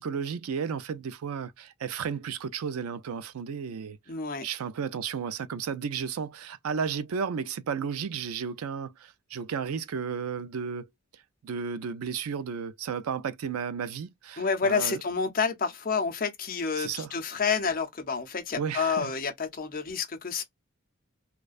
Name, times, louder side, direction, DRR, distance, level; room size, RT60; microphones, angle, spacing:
voice 1, 0.0-4.0 4.4-10.9 11.4-15.0 16.8-17.1 18.6-19.1, right 6 dB, 85° right, 0.4 m, -33 dB
voice 2, 4.1-4.4 14.4-20.4, left 5 dB, 40° left, 0.6 m, -29 dB
2.4 x 2.2 x 2.4 m
head